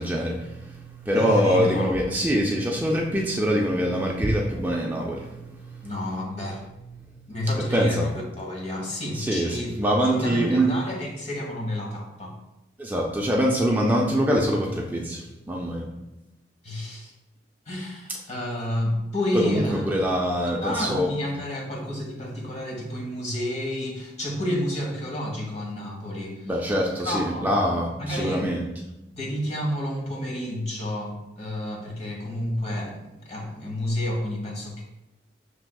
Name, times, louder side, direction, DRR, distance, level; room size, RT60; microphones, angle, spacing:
voice 1, 0.0-5.9 7.7-8.1 9.1-10.7 12.8-15.9 19.3-21.1 26.4-28.7, equal, 10° right, -1 dB, 0.4 m, -24 dB
voice 2, 1.1-2.0 5.8-6.7 7.3-8.1 8.4-9.7 10.0-12.4 16.6-17.1 17.7-19.8 20.6-26.5 27.0-27.5 27.9-28.5 29.1-34.8, left 1 dB, 40° left, -1 dB, 1.0 m, -30 dB
6.1 x 3.4 x 2.2 m, 0.95 s
head